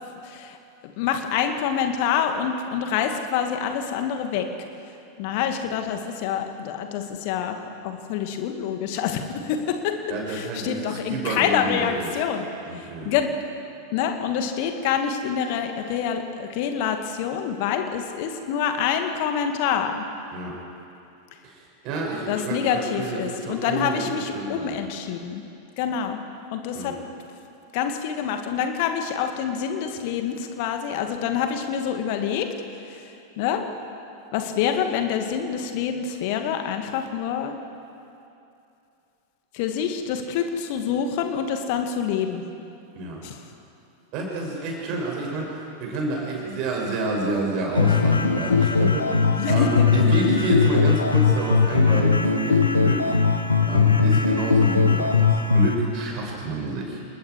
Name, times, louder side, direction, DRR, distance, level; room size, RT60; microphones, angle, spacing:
voice 1, 0.2-0.6 1.0-4.5 5.2-7.6 7.8-12.5 12.7-13.3 13.9-20.0 22.3-25.4 25.8-26.2 26.5-26.9 27.7-32.5 32.9-33.1 33.4-33.7 34.3-37.6 39.5-42.4 43.2-43.4 49.4-49.8, left 8 dB, 45° left, 6 dB, 2.1 m, -26 dB
voice 2, 10.1-12.1 12.7-13.2 20.3-20.6 21.4-21.6 21.8-24.0 24.3-24.8 26.7-26.9 42.9-43.2 44.1-53.1 53.7-57.0, right 2 dB, 40° right, -2 dB, 6.9 m, -29 dB
sound 1, 47.8-55.7, left 5 dB, 75° left, 1.4 m, -19 dB
29.5 x 20.0 x 4.9 m, 2.7 s
figure-of-eight pair, 90°, 0 cm